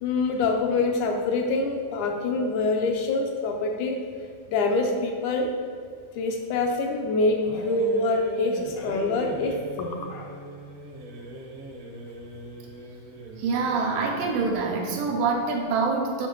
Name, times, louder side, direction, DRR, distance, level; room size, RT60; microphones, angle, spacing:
voice 1, 0.0-4.0 4.5-5.5 6.2-10.3 13.7-13.8, left 3 dB, 80° left, 2 dB, 1.9 m, -25 dB
sound 1, 7.4-15.1, right 1 dB, 65° right, 1.5 m, -40 dB
voice 2, 13.4-16.3, right 4 dB, 80° right, 1 dB, 2.5 m, -25 dB
7.4 x 5.4 x 3.9 m, 2.3 s
omnidirectional pair, 3.8 m